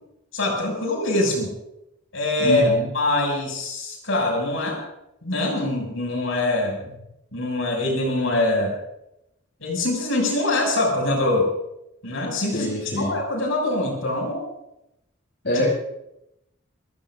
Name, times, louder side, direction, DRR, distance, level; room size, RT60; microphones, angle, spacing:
voice 1, 0.3-1.5 2.1-4.8 5.2-6.8 7.3-8.7 9.6-11.5 12.0-12.7 13.0-14.4 15.5-15.6, left 2 dB, 75° left, 0 dB, 6.6 m, -23 dB
voice 2, 2.4-2.9 12.5-13.1 15.4-15.7, left 1 dB, 55° left, -4 dB, 7.2 m, -24 dB
29.5 x 15.0 x 2.6 m, 0.84 s
head